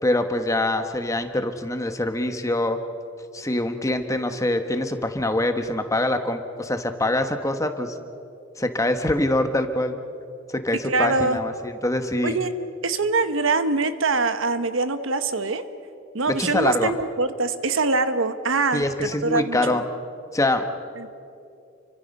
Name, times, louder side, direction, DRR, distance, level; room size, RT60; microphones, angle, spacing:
voice 1, 0.0-2.8 3.3-7.9 8.6-10.0 10.6-12.4 16.3-16.9 18.7-19.8 20.3-20.6, left 1 dB, 15° left, 7 dB, 1.2 m, -24 dB
voice 2, 10.8-11.4 12.2-12.5 12.8-15.6 16.1-19.8 21.0-21.1, right 3 dB, 75° right, 10 dB, 1.2 m, -24 dB
30.0 x 24.5 x 5.5 m, 2.6 s
head